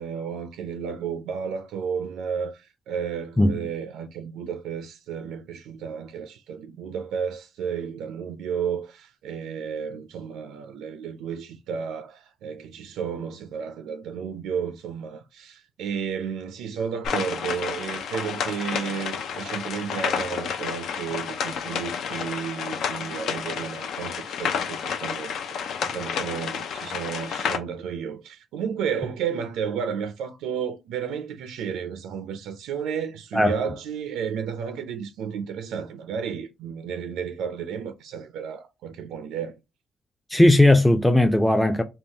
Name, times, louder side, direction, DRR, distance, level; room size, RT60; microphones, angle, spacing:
voice 1, 0.0-39.6, right 7 dB, 90° right, 0.4 m, -32 dB
sound 1, 17.0-27.6, left 7 dB, 75° left, 0.5 m, -30 dB
voice 2, 40.3-41.8, left 1 dB, 5° left, 0.4 m, -17 dB
3.5 x 2.2 x 2.7 m
cardioid pair, 90°, 0 cm